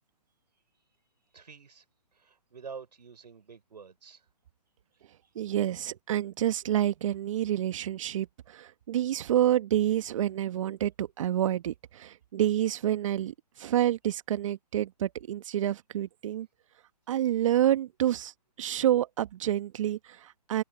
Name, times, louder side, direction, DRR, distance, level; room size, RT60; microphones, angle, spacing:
voice 1, 1.3-1.8 2.1-4.3, right 5 dB, 80° right, 5.5 m, -47 dB
voice 2, 5.3-16.5 17.1-18.3 18.6-20.6, right 12 dB, 50° right, 1.6 m, -28 dB
hypercardioid pair, 145°, 21 cm